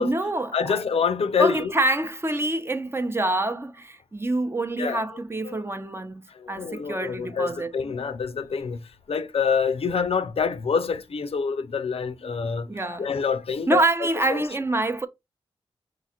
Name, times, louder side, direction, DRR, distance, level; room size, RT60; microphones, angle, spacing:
voice 1, 0.0-0.8 1.4-6.2 6.5-7.7 12.2-12.4 12.7-13.1 13.7-15.1, right 2 dB, 20° right, 0.7 m, -26 dB
voice 2, 0.5-1.7 4.8-5.0 5.4-5.6 6.3-8.8 9.1-13.8 14.3-14.4, left 6 dB, 60° left, 0.5 m, -26 dB
4.9 x 2.4 x 4.2 m
cardioid pair, 50°, 11 cm